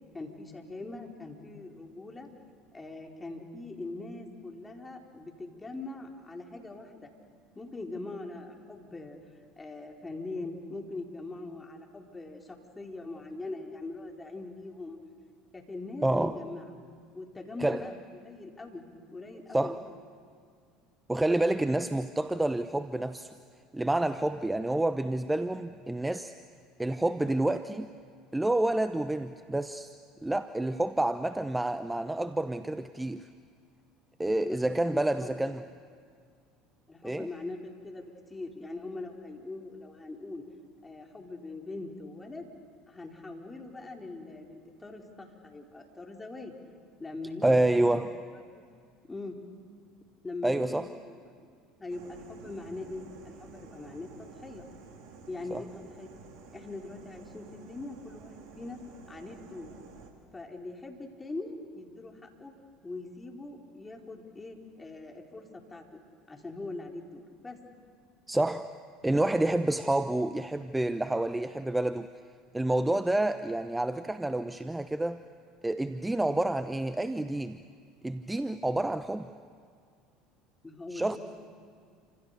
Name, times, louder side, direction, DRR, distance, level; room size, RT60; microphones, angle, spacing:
voice 1, 0.1-2.3 2.7-7.1 7.5-9.2 9.6-15.0 15.5-16.6 17.1-19.8 34.4-35.3 36.9-40.4 40.8-42.5 42.9-46.5 47.0-48.0 48.3-48.7 49.1-49.3 50.2-51.3 51.8-54.6 55.3-56.2 56.5-58.8 59.1-59.7 60.3-62.5 62.8-66.0 66.3-67.6 80.6-81.2, left 2 dB, 15° left, 1 dB, 4.6 m, -42 dB
voice 2, 16.0-16.4 17.6-17.9 19.5-19.8 21.1-23.3 23.7-26.3 26.8-27.9 28.3-30.0 30.2-33.3 34.2-35.6 37.0-37.3 47.4-48.1 50.4-50.9 55.5-55.6 68.3-68.7 69.0-72.1 72.5-75.2 75.6-77.6 78.0-79.3 80.9-81.2, right 1 dB, 10° right, 11 dB, 0.9 m, -28 dB
sound 1, 51.9-60.1, right 5 dB, 60° right, 3.7 m, -51 dB
29.0 x 26.5 x 6.9 m, 2.2 s
hypercardioid pair, 70°, 0 cm